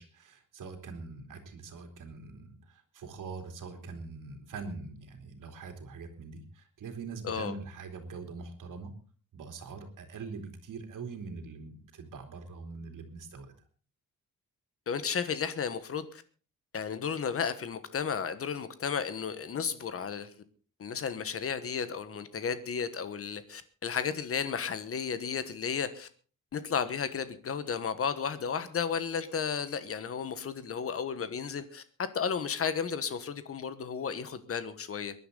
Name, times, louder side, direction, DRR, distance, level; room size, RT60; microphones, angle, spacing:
voice 1, 0.0-8.9 9.3-13.5, right 4 dB, 70° right, 5 dB, 3.1 m, -43 dB
voice 2, 14.9-16.2 16.7-20.3 20.8-26.1 26.5-31.8 32.1-35.1, left 6 dB, 45° left, 12 dB, 1.3 m, -33 dB
22.5 x 11.0 x 3.9 m, 0.38 s
wide cardioid pair, 160°, 32 cm